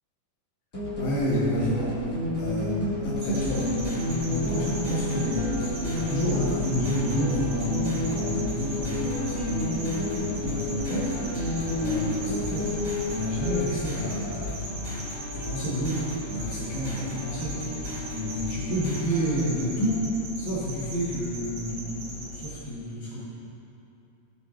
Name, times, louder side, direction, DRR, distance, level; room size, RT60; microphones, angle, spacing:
sound 1, 0.7-13.7, left 2 dB, 30° left, 1.7 m, -30 dB
voice 1, 1.0-2.0 2.4-11.1 11.8-12.7 13.1-14.6 15.3-17.6 18.1-20.0 20.4-23.2, equal, 80° left, -9 dB, 3.4 m, -30 dB
sound 2, 3.2-22.5, left 1 dB, 70° right, 3.0 m, -39 dB
sound 3, 3.3-19.4, left 1 dB, 15° right, 1.6 m, -36 dB
15.5 x 5.9 x 3.3 m, 2.8 s
omnidirectional pair, 4.0 m